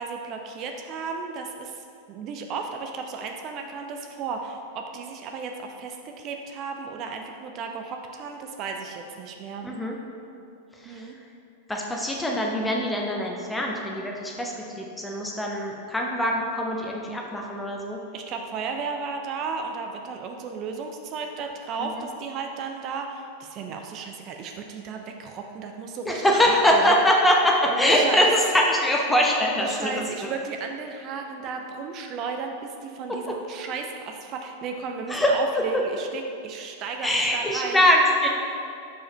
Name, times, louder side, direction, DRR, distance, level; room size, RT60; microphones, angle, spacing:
voice 1, 0.0-9.7 10.8-11.1 18.1-26.9 27.6-28.3 29.4-37.8, right 5 dB, 35° right, 4 dB, 0.5 m, -34 dB
voice 2, 9.6-9.9 10.8-11.1 11.7-18.0 21.8-21.9 26.1-30.3 33.1-33.4 35.1-35.6 37.0-38.3, equal, 5° left, -1 dB, 0.7 m, -23 dB
5.0 x 4.8 x 5.3 m, 2.5 s
figure-of-eight pair, 90°, 0 cm